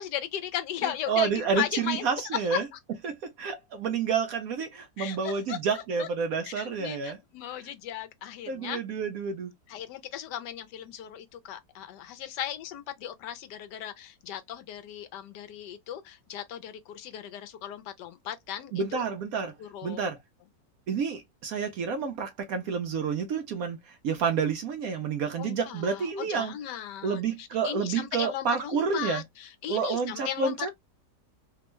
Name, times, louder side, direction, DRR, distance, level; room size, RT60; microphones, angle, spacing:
voice 1, 0.0-2.1 2.5-2.6 5.0-6.1 6.4-8.8 9.7-19.0 19.6-20.1 25.4-30.7, left 11 dB, 75° left, 1.2 m, -37 dB
voice 2, 0.8-2.7 3.0-7.2 8.5-9.5 18.7-19.5 19.8-20.2 20.9-26.5 27.0-29.2 29.7-30.7, right 5 dB, 70° right, 0.9 m, -29 dB
3.4 x 2.1 x 2.9 m
omnidirectional pair, 1.9 m